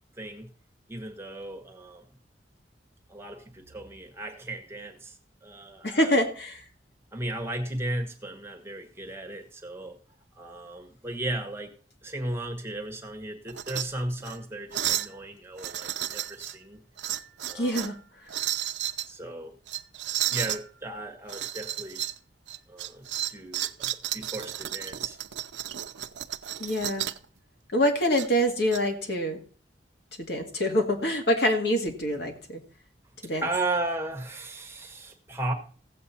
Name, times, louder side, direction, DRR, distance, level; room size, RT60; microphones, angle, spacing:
voice 1, 0.2-0.5 0.9-2.1 3.1-6.2 7.1-10.0 10.4-11.7 12.0-16.8 17.5-17.9 19.1-19.5 20.3-22.0 22.7-25.2 33.4-35.5, right 2 dB, 15° right, 3 dB, 1.4 m, -35 dB
voice 2, 5.8-6.6 17.5-18.0 26.6-27.0 27.7-29.4 30.2-32.6 33.2-33.4, equal, 65° left, 3 dB, 2.0 m, -25 dB
sound 1, 13.5-13.9 14.2-14.4 14.7-15.1 15.6-16.6 17.0-18.0 18.3-19.1 19.7-20.6 21.3-22.2 22.5-27.2 28.2-28.8, right 12 dB, 85° right, 0.6 m, -32 dB
16.0 x 7.7 x 4.3 m, 0.42 s
head